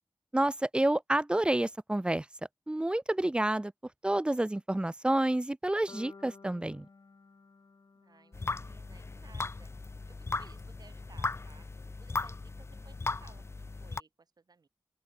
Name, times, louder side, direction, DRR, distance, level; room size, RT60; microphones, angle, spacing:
voice 1, 0.3-2.3 2.7-3.7 4.0-6.9, right 1 dB, 15° right, 0.5 m, -29 dB
sound 1, 5.9-10.0, left 4 dB, 60° left, 6.6 m, -56 dB
voice 2, 8.0-9.7 10.1-11.7 12.0-14.7, right 4 dB, 65° right, 5.0 m, -60 dB
sound 2, 8.3-14.0, left 3 dB, 35° left, 0.7 m, -37 dB
open air
wide cardioid pair, 75°, 7 cm